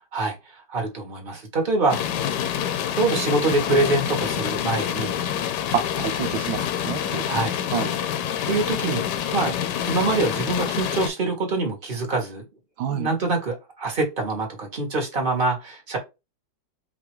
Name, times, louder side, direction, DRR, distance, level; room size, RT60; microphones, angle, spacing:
voice 1, 0.1-2.0 2.9-5.2 7.3-7.6 8.5-9.1 9.3-9.6 9.8-12.4 12.9-16.0, right 3 dB, 30° right, 1.8 m, -25 dB
sound 1, 1.9-11.1, left 9 dB, 70° left, 1.2 m, -27 dB
voice 2, 5.7-7.2 7.7-7.9 12.8-13.1, right 9 dB, 80° right, 1.4 m, -28 dB
5.1 x 3.0 x 3.2 m
omnidirectional pair, 2.1 m